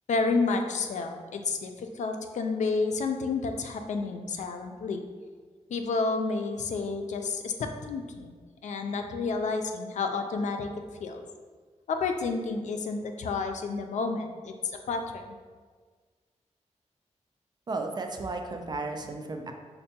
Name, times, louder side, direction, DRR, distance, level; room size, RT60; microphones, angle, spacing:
voice 1, 0.1-5.0 5.7-8.3 8.6-10.7 11.0-11.3 11.9-15.4, left 4 dB, 85° left, 5 dB, 0.4 m, -30 dB
voice 2, 17.7-19.5, right 3 dB, 35° right, 4 dB, 0.3 m, -34 dB
5.3 x 2.2 x 2.7 m, 1.5 s
wide cardioid pair, 140°, 12 cm